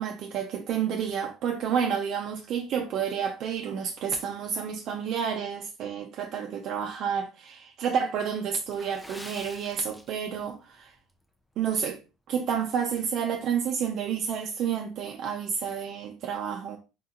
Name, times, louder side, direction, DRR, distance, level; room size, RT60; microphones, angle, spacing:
voice 1, 0.0-10.9 11.6-12.0 12.3-16.8, right 7 dB, 60° right, 0.6 m, -30 dB
Water / Splash splatter, 8.7-10.6 10.9-11.1 11.7-11.9 12.4-12.5, left 1 dB, 5° left, 0.6 m, -46 dB
3.6 x 2.7 x 3.8 m
cardioid pair, 115°, 0 cm